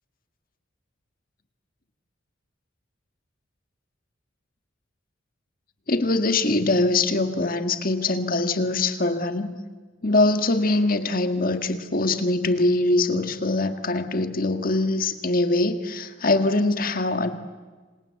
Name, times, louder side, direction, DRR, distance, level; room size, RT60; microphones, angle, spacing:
voice 1, 5.9-9.5 10.0-17.3, left 2 dB, 45° left, 8 dB, 1.8 m, -23 dB
27.0 x 26.5 x 8.2 m, 1.4 s
head